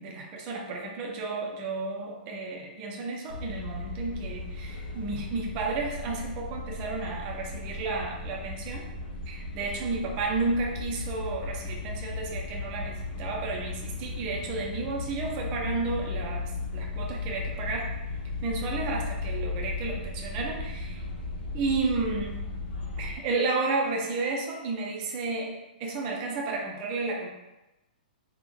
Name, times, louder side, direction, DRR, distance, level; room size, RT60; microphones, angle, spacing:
voice 1, 0.0-8.8 9.3-17.9 18.4-21.0 21.5-22.4 23.0-27.3, right 3 dB, 20° right, -1 dB, 0.5 m, -32 dB
sound 1, 3.3-23.2, left 3 dB, 75° left, 1.4 m, -36 dB
3.4 x 2.9 x 3.7 m, 1.0 s
hypercardioid pair, 175°, 5 cm